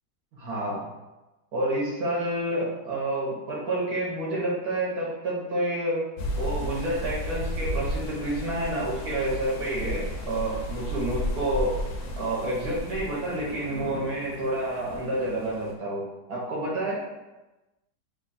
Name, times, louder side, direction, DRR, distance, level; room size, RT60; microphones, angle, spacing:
voice 1, 0.4-0.8 1.5-6.1 6.3-11.8 12.2-17.0, right 1 dB, 60° right, -5 dB, 1.3 m, -29 dB
sound 1, 6.2-15.7, left 1 dB, 75° left, 1.2 m, -34 dB
3.4 x 2.3 x 3.9 m, 1.1 s
omnidirectional pair, 2.0 m